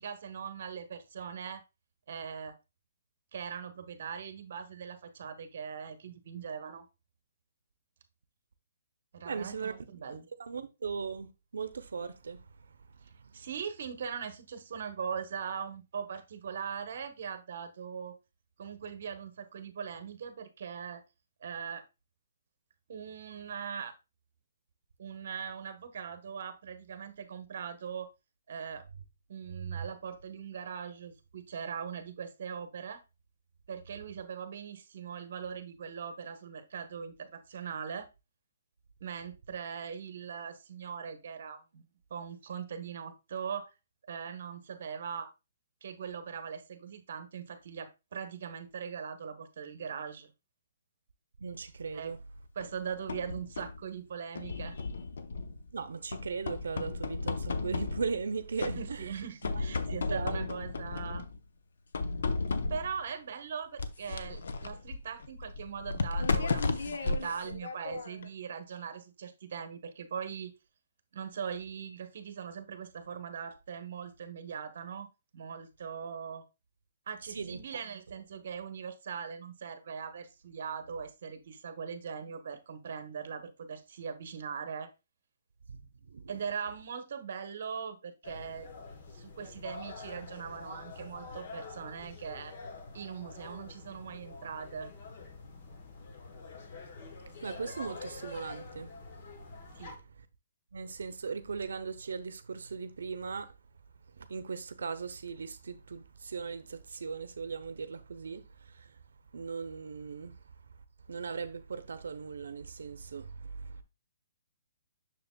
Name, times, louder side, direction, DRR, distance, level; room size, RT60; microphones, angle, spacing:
voice 1, 0.0-1.6 2.1-2.5 3.3-6.9 9.1-10.3 13.0-18.1 18.6-21.0 21.4-21.8 22.9-23.9 25.0-28.1 28.5-28.9 29.3-33.0 33.7-38.1 39.0-43.7 44.1-45.3 45.8-50.3 51.9-52.1 52.6-54.8 58.8-61.2 62.7-70.5 71.1-75.1 75.3-76.5 77.1-84.9 86.3-88.7 89.1-92.5 92.9-94.9 99.7-99.9, right 7 dB, 50° right, 1.0 m, -40 dB
voice 2, 9.2-9.7 10.4-13.4 29.5-29.9 51.4-52.2 55.7-59.2 60.1-60.5 77.2-77.6 85.7-86.3 97.4-99.4 100.7-103.5 104.1-109.0 109.3-110.5 111.1-113.8, right 5 dB, 85° right, 0.6 m, -39 dB
sound 1, 52.6-53.8 54.4-55.7 56.1-58.3 58.6-59.1 59.4-61.4 61.9-63.0 63.8-68.3, left 3 dB, 75° left, 0.7 m, -34 dB
sound 2, 88.2-100.0, left 3 dB, 35° left, 1.0 m, -46 dB
6.8 x 6.4 x 2.2 m
hypercardioid pair, 170°, 0 cm